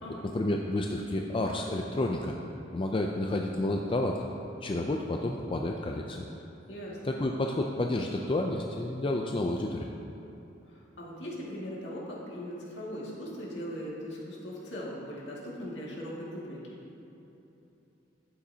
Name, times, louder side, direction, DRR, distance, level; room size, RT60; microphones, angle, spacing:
voice 1, 0.3-2.3 2.7-4.2 4.6-6.3 7.0-9.9, left 1 dB, 30° left, 1 dB, 0.4 m, -30 dB
voice 2, 6.7-7.0 10.7-16.8, equal, 70° left, -5 dB, 2.1 m, -39 dB
12.0 x 8.6 x 2.8 m, 3.0 s
head